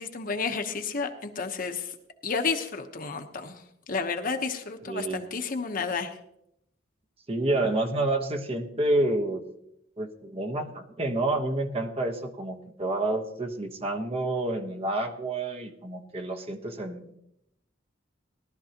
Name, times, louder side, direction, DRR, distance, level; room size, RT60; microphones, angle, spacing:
voice 1, 0.0-1.9 2.2-3.6 3.9-6.2, left 4 dB, 45° left, 5 dB, 1.0 m, -31 dB
voice 2, 4.8-5.2 7.3-9.4 10.0-17.2, right 2 dB, 30° right, 3 dB, 1.2 m, -29 dB
18.0 x 12.5 x 2.9 m, 0.77 s
head